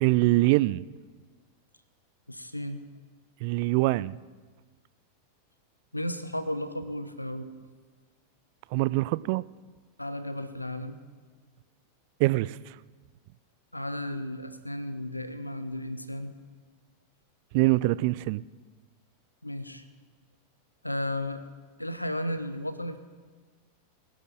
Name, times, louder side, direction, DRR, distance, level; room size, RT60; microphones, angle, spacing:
voice 1, 0.0-0.8 3.4-4.2 8.7-9.4 12.2-12.8 17.5-18.4, right 20 dB, 45° right, 19 dB, 0.3 m, -24 dB
voice 2, 2.3-2.8 5.9-7.5 10.0-11.0 13.7-16.3 19.4-19.8 20.8-21.4 21.8-23.0, left 1 dB, 85° left, 12 dB, 1.0 m, -34 dB
21.5 x 11.5 x 3.8 m, 1.4 s
figure-of-eight pair, 90°, 0 cm